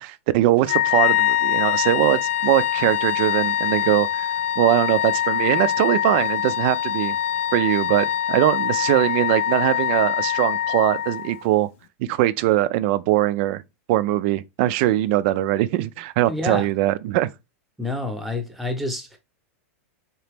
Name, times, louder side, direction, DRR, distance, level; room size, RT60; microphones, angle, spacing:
voice 1, 0.0-7.2 7.5-11.7 12.0-13.6 13.9-17.3, right 15 dB, 50° right, 0.4 m, -21 dB
Wind instrument woodwind instrument, 0.6-11.4, left 11 dB, 60° left, 0.5 m, -23 dB
voice 2, 16.2-16.7 17.8-19.2, left 2 dB, ahead, 0.8 m, -28 dB
4.0 x 2.9 x 3.4 m
supercardioid pair, 150°, 8 cm